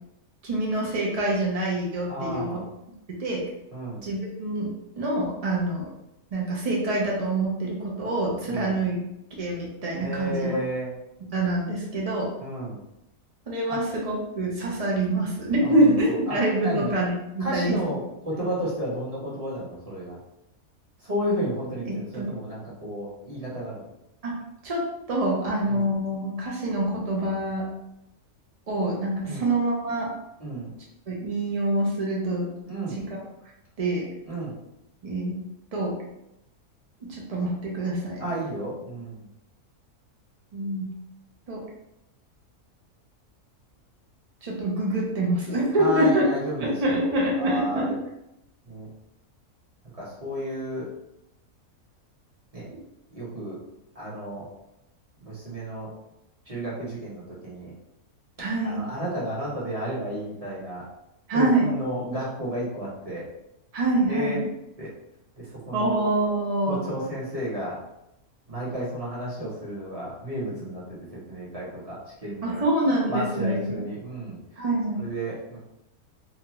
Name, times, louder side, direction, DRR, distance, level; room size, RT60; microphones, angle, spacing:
voice 1, 0.4-2.5 3.2-3.4 4.0-4.7 5.0-5.9 6.3-9.0 9.4-10.6 11.3-12.3 13.5-18.0 21.8-22.3 24.2-24.3 24.6-24.8 25.1-27.7 28.7-30.1 31.1-32.5 33.0-33.2 33.8-34.1 35.0-35.4 35.7-35.9 37.1-38.3 40.5-40.8 41.5-41.6 44.4-46.2 46.6-48.0 58.4-58.8 61.3-61.7 63.7-64.5 65.7-66.8 72.4-73.8 74.6-75.0, right 1 dB, 65° right, -3 dB, 0.3 m, -25 dB
voice 2, 2.1-2.6 3.7-4.0 8.5-8.8 10.0-10.9 12.4-12.8 13.7-13.8 15.6-16.4 16.6-16.9 17.4-20.2 21.0-23.8 25.6-25.8 29.2-29.4 30.4-30.7 32.7-33.0 34.3-34.5 38.2-39.2 45.8-48.0 48.7-48.9 49.9-50.9 52.5-52.7 53.1-53.6 53.9-54.5 55.2-55.9 56.5-57.7 58.6-60.8 61.3-63.3 64.1-64.4 64.8-64.9 65.4-66.0 66.6-67.8 68.5-72.6 73.1-74.6 75.0-75.6, equal, 30° right, -8 dB, 0.9 m, -32 dB
2.9 x 2.3 x 3.0 m, 0.86 s
omnidirectional pair, 1.6 m